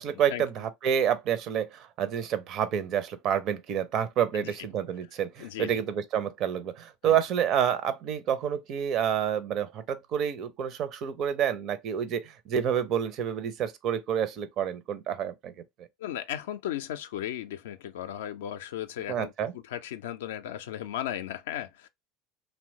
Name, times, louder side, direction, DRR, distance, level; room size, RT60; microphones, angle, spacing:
voice 1, 0.0-15.5 19.1-19.5, right 9 dB, 50° right, 0.5 m, -28 dB
voice 2, 5.4-5.9 7.0-7.2 16.0-21.9, left 11 dB, 70° left, 0.3 m, -36 dB
2.9 x 2.2 x 2.7 m
figure-of-eight pair, 70°, 0 cm